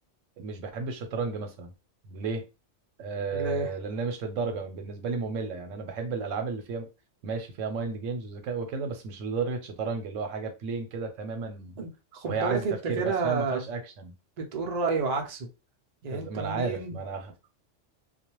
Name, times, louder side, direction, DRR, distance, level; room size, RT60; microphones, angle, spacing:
voice 1, 0.4-1.7 2.0-2.4 3.0-6.9 7.2-11.8 12.3-14.1 16.1-17.3, right 4 dB, 85° right, 1.0 m, -33 dB
voice 2, 3.3-3.7 11.8-13.7 14.4-15.5 16.0-17.0, right 4 dB, 45° right, 0.6 m, -30 dB
2.3 x 2.1 x 2.9 m
omnidirectional pair, 1.3 m